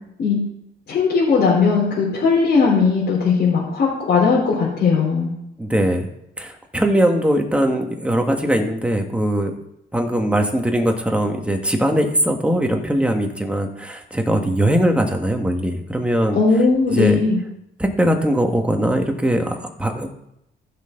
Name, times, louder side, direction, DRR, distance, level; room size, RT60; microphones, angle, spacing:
voice 1, 0.9-5.3 16.3-17.4, left 4 dB, 55° left, -6 dB, 3.9 m, -18 dB
voice 2, 5.6-6.1 6.4-9.5 9.9-16.4 16.9-17.2 17.8-20.1, right 1 dB, 5° right, 3 dB, 1.7 m, -20 dB
15.0 x 6.7 x 3.9 m, 0.81 s
cardioid pair, 90°, 20 cm